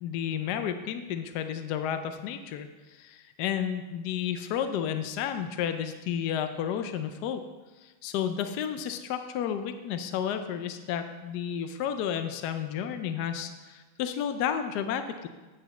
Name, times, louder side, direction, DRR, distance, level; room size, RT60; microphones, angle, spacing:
voice 1, 0.0-7.4 7.8-15.3, left 8 dB, 80° left, 8 dB, 0.9 m, -32 dB
8.5 x 5.1 x 6.9 m, 1.2 s
omnidirectional pair, 2.3 m